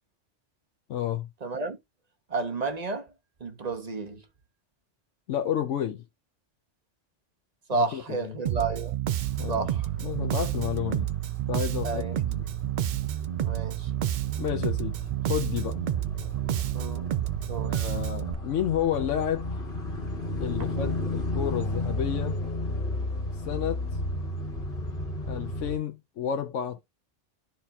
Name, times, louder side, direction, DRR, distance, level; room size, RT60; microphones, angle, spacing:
voice 1, 0.9-1.3 5.3-6.0 7.7-8.3 9.4-9.6 10.0-11.1 11.5-12.4 14.4-14.9 15.3-15.8 17.7-19.5 20.4-22.4 23.4-23.8 25.3-26.8, left 10 dB, 85° left, 1.1 m, -30 dB
voice 2, 1.4-1.8 2.3-3.1 3.4-4.2 7.7-8.9 9.5-9.9 11.8-12.2 13.4-13.9 16.7-17.0 17.5-17.8 20.6-20.9, right 4 dB, 35° right, 1.0 m, -31 dB
Bass guitar, 8.5-18.3, right 12 dB, 60° right, 0.5 m, -29 dB
sound 1, 9.1-25.8, left 1 dB, 55° left, 1.8 m, -34 dB
12.5 x 4.2 x 2.3 m
omnidirectional pair, 1.2 m